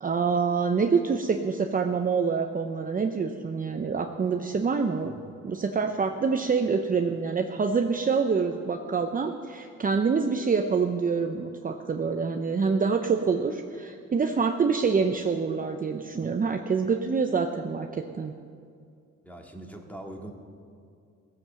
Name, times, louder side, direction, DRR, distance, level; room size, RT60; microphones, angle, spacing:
voice 1, 0.0-5.1 5.4-18.3, right 5 dB, 30° right, 5 dB, 0.7 m, -26 dB
voice 2, 19.2-20.3, right 1 dB, 5° left, 2 dB, 2.0 m, -41 dB
16.5 x 7.6 x 7.5 m, 2.4 s
cardioid pair, 90°, 30 cm